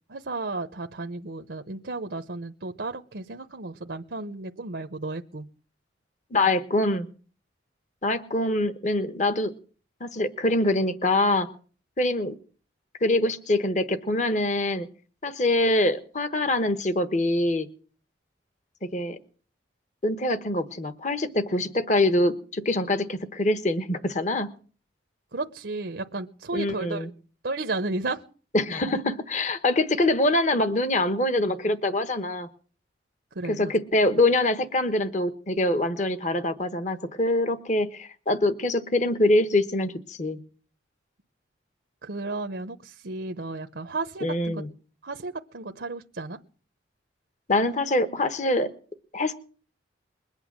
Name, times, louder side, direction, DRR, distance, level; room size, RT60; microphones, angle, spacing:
voice 1, 0.1-5.5 25.3-27.1 27.4-28.2 33.3-33.7 42.0-44.6 45.0-46.4, right 3 dB, 65° right, 5 dB, 0.8 m, -33 dB
voice 2, 6.3-7.1 8.0-9.5 10.0-11.5 12.0-12.3 13.0-14.9 15.2-17.7 18.9-19.2 20.0-24.5 26.5-27.1 28.5-32.5 33.4-40.4 44.2-44.7 47.5-48.7 49.1-49.3, left 1 dB, 40° left, 12 dB, 1.2 m, -24 dB
21.5 x 9.0 x 7.4 m, 0.41 s
head